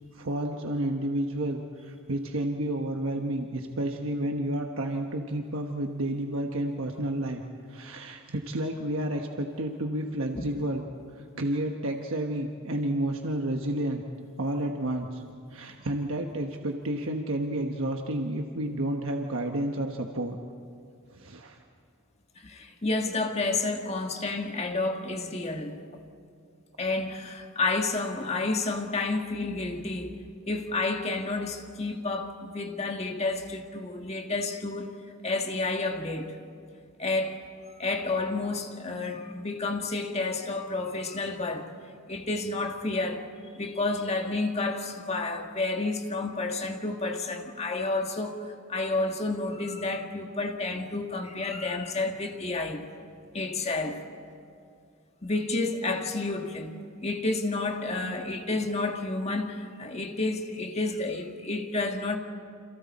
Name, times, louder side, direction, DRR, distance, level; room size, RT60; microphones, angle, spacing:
voice 1, 0.1-10.9 11.1-14.0 14.4-15.2 15.5-20.4 21.1-21.6, right 1 dB, 70° right, 1.2 m, -31 dB
voice 2, 22.4-25.8 26.8-30.2 30.5-34.9 35.2-36.3 37.0-37.4 37.8-41.7 42.1-43.3 43.5-48.4 48.7-52.8 53.3-54.0 55.2-56.7 57.0-62.2, left 3 dB, 30° left, 1.6 m, -30 dB
29.0 x 27.0 x 4.3 m
head